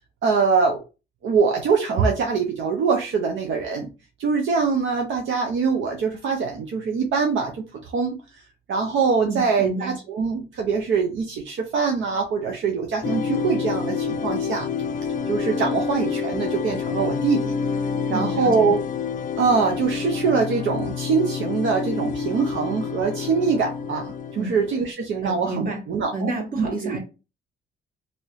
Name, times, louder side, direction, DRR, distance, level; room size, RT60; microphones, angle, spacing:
voice 1, 0.2-0.8 1.2-3.9 4.2-8.2 8.7-14.7 15.3-17.5 18.1-18.8 19.4-26.3 26.6-27.0, right 5 dB, 70° right, 2 dB, 0.7 m, -23 dB
voice 2, 9.2-9.9 18.1-18.7 24.3-24.5 25.2-25.8 26.1-27.0, right 2 dB, 45° right, 1 dB, 1.5 m, -29 dB
sound 1, 13.0-24.9, left 6 dB, 40° left, 0.4 m, -28 dB
2.9 x 2.7 x 3.0 m, 0.29 s
cardioid pair, 90°, 20 cm